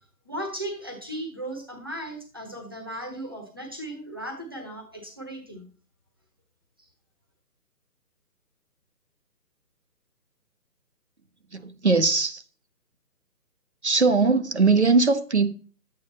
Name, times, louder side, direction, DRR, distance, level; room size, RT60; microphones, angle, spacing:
voice 1, 0.2-5.7 6.8-6.9, right 1 dB, 15° right, 1.1 m, -36 dB
voice 2, 11.5-12.4 13.8-15.5, right 4 dB, 45° right, 0.9 m, -20 dB
11.0 x 8.7 x 4.1 m
hypercardioid pair, 180°, 48 cm